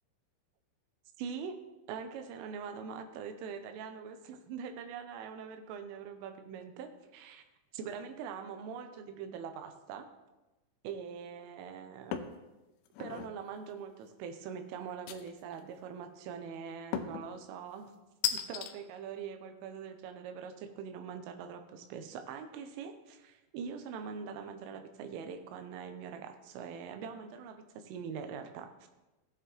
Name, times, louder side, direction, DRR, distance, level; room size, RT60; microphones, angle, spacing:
voice 1, 1.2-1.6 1.9-7.4 7.7-10.1 10.8-12.2 13.0-17.9 18.3-28.9, right 6 dB, 85° right, 6 dB, 3.3 m, -43 dB
sound 1, 12.1-12.4 12.9-13.3 15.1-15.6 16.9-17.3 18.2-18.7, left 9 dB, 80° left, 2.7 m, -35 dB
15.5 x 9.4 x 3.1 m, 1.1 s
omnidirectional pair, 5.9 m